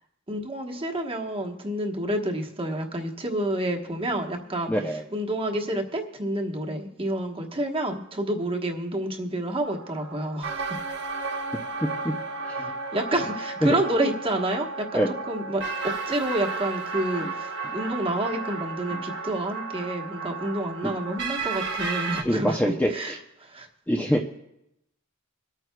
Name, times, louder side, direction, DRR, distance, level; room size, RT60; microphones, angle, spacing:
voice 1, 0.3-4.7 5.1-10.8 12.9-23.7, right 1 dB, 25° right, 2 dB, 1.1 m, -29 dB
voice 2, 4.7-5.0 11.8-12.1 12.6-12.7 13.6-13.8 14.9-15.1 17.2-17.3 17.6-17.7 18.9-19.0 20.8-20.9 22.2-23.2 23.9-24.2, equal, 10° left, 1 dB, 0.5 m, -25 dB
sound 1, 9.6-22.2, right 4 dB, 55° right, 1.2 m, -33 dB
26.0 x 9.1 x 2.2 m, 0.85 s
head